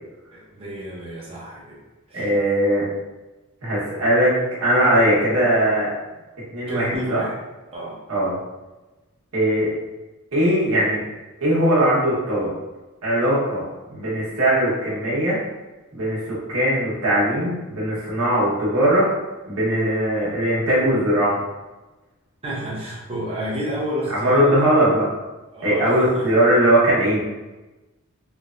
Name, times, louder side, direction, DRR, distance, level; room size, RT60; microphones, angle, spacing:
voice 1, 0.3-1.8 2.1-2.3 6.7-7.4 7.7-8.0 22.4-24.7 25.5-26.3, equal, 25° right, -5 dB, 0.7 m, -30 dB
voice 2, 2.1-2.9 3.6-4.3 4.6-5.9 6.5-7.2 8.1-8.4 9.3-9.7 10.3-11.0 11.4-12.5 13.0-15.4 15.9-19.1 19.5-21.4 24.2-25.1 25.6-27.2, right 1 dB, 75° right, -7 dB, 1.0 m, -20 dB
3.1 x 2.1 x 2.5 m, 1.1 s
head